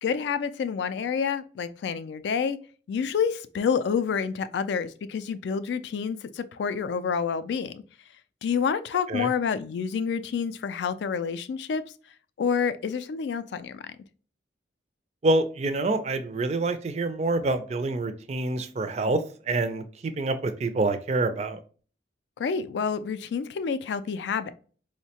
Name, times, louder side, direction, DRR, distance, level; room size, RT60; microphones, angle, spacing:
voice 1, 0.0-2.6 2.9-7.8 8.4-11.8 12.4-14.0 22.4-24.5, left 6 dB, 75° left, 13 dB, 0.3 m, -28 dB
voice 2, 15.2-21.6, right 2 dB, 35° right, 9 dB, 0.3 m, -27 dB
4.5 x 2.1 x 2.8 m, 0.40 s
head